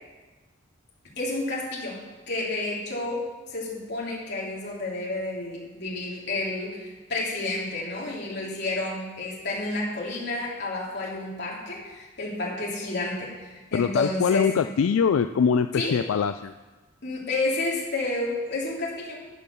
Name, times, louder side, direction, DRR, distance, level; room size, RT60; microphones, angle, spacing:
voice 1, 1.2-14.5 15.7-16.0 17.0-19.2, left 2 dB, 55° left, -4 dB, 3.1 m, -30 dB
voice 2, 13.7-16.5, left 6 dB, 85° left, 9 dB, 0.3 m, -23 dB
14.0 x 5.4 x 6.9 m, 1.3 s
head